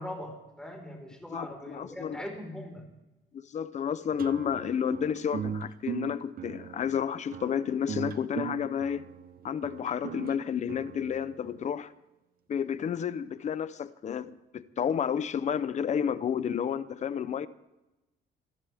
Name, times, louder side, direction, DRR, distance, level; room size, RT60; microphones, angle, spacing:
voice 1, 0.0-2.9, left 1 dB, 5° left, 4.8 m, -41 dB
voice 2, 1.3-2.2 3.3-9.0 9.4-11.9 12.5-17.5, left 8 dB, 40° left, 0.7 m, -31 dB
sound 1, 4.2-11.6, right 8 dB, 50° right, 0.9 m, -39 dB
26.0 x 14.5 x 3.6 m
cardioid pair, 140°, 19 cm